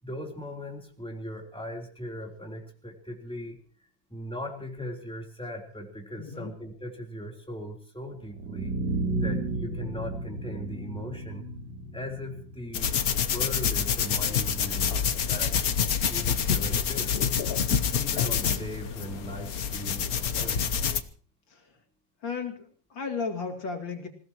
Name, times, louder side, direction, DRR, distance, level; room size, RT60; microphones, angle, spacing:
voice 1, 0.0-3.6 4.1-8.7 9.2-11.4 11.9-12.9 13.2-14.9 15.3-15.5 16.1-17.2 17.9-20.7, equal, 5° left, 0 dB, 3.4 m, -39 dB
voice 2, 6.2-6.5 21.5-21.6 22.2-24.1, left 5 dB, 75° left, 3 dB, 3.2 m, -34 dB
sound 1, 8.2-14.2, right 2 dB, 70° right, 3.7 m, -34 dB
sound 2, 12.7-21.0, left 7 dB, 55° left, 1.4 m, -27 dB
26.5 x 16.5 x 3.0 m, 0.43 s
omnidirectional pair, 2.0 m